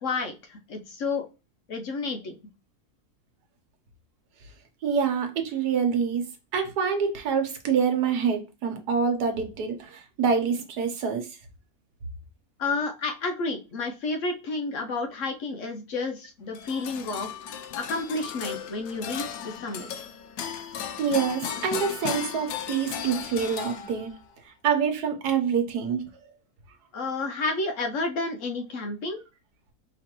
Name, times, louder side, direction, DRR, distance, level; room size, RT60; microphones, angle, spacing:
voice 1, 0.0-1.3 1.7-2.3 12.6-19.9 26.9-29.2, left 3 dB, 60° left, 0.9 m, -31 dB
voice 2, 4.8-11.3 21.0-24.1 24.4-26.1, right 6 dB, 80° right, 1.4 m, -26 dB
sound 1, 16.5-24.2, left 8 dB, 85° left, 1.2 m, -36 dB
5.0 x 3.0 x 2.9 m
omnidirectional pair, 1.7 m